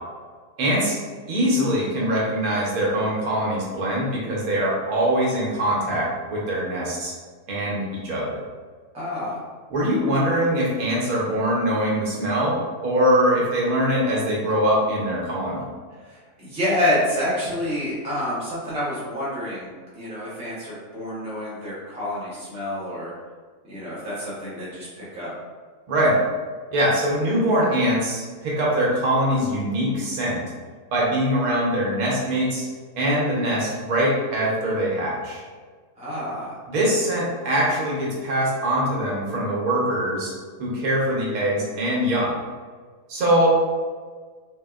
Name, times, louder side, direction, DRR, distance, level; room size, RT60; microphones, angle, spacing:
voice 1, 0.6-1.0 1.3-7.1 7.5-8.4 9.7-15.7 25.9-26.2 26.7-30.4 30.9-32.7 33.0-35.4 36.7-40.3 40.6-42.3 43.1-43.5, equal, 70° right, -4 dB, 1.2 m, -23 dB
voice 2, 8.9-9.4 16.0-23.1 23.7-25.3 36.0-36.6, left 1 dB, 5° right, -8 dB, 0.5 m, -28 dB
3.3 x 2.7 x 2.3 m, 1.5 s
omnidirectional pair, 1.6 m